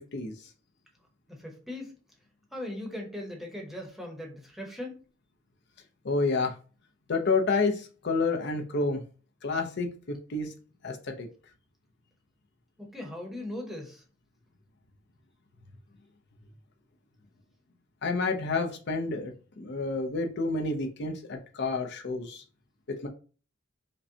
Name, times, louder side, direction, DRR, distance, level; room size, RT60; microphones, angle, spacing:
voice 1, 1.3-2.0 2.5-5.0 12.8-14.0, left 1 dB, ahead, -1 dB, 0.8 m, -39 dB
voice 2, 6.0-6.5 7.1-9.0 9.4-9.9 10.3-10.5 10.8-11.3 18.0-22.4 23.0-23.1, left 3 dB, 55° left, 4 dB, 0.6 m, -29 dB
5.1 x 2.1 x 2.7 m, 0.37 s
head